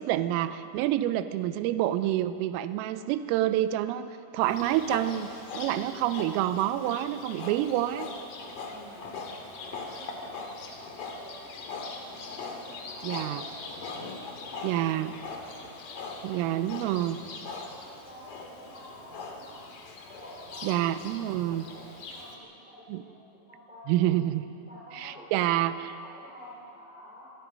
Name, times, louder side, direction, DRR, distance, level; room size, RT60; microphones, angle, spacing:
voice 1, 0.0-8.1 13.0-13.4 14.6-15.2 16.2-17.2 20.6-21.7 22.9-23.0 23.9-24.5 25.0-25.7, right 13 dB, 85° right, 12 dB, 3.4 m, -28 dB
Livestock farm animals working animals, 4.4-22.3, left 3 dB, 50° left, 3.2 m, -41 dB
voice 2, 8.6-9.1 9.6-12.0 12.5-15.4 15.9-16.7 17.1-19.6 20.1-24.1 24.5-27.3, equal, ahead, -8 dB, 3.5 m, -50 dB
26.5 x 23.0 x 5.5 m, 2.6 s
omnidirectional pair, 5.9 m